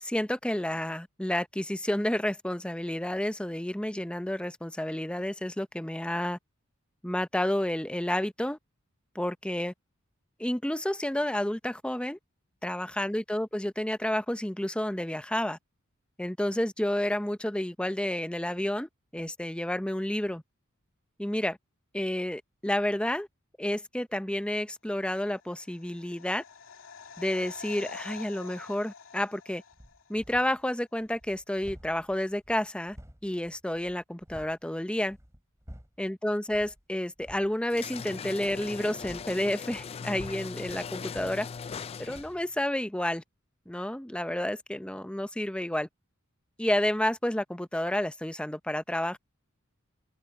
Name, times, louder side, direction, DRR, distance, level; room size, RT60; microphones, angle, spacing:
voice 1, 0.0-6.4 7.0-8.6 9.1-9.7 10.4-12.2 12.6-15.6 16.2-20.4 21.2-21.6 21.9-23.3 23.6-26.4 27.2-29.6 30.1-33.0 33.2-35.2 36.0-41.5 42.0-43.2 43.7-45.9 46.6-49.2, left 1 dB, 5° left, 0.7 m, -30 dB
sound 1, 25.4-30.2 30.5-30.6, left 6 dB, 70° left, 2.7 m, -47 dB
sound 2, 29.7-30.7 31.0-34.6 35.0-36.1 36.5-36.8 37.2-37.5 38.4-41.9 42.1-42.5, equal, 15° right, 5.7 m, -51 dB
sound 3, 37.7-42.4, left 6 dB, 30° left, 0.3 m, -39 dB
head